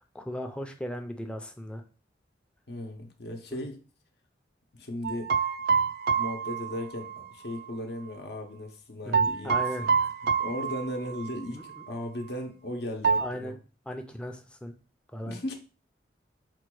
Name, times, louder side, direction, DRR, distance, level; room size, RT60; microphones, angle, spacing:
voice 1, 0.1-1.8 3.5-3.6 9.0-10.1 11.5-11.8 13.2-13.6 13.9-14.7 15.1-15.4, equal, 5° left, 5 dB, 0.5 m, -37 dB
voice 2, 2.7-3.8 4.7-5.3 6.1-9.9 10.4-13.5 15.2-15.5, left 1 dB, 65° left, 3 dB, 0.7 m, -36 dB
sound 1, 5.0-7.7 9.1-11.4 11.7-11.9 13.0-13.3, right 6 dB, 60° right, 0.3 m, -27 dB
4.4 x 2.3 x 4.6 m, 0.35 s
head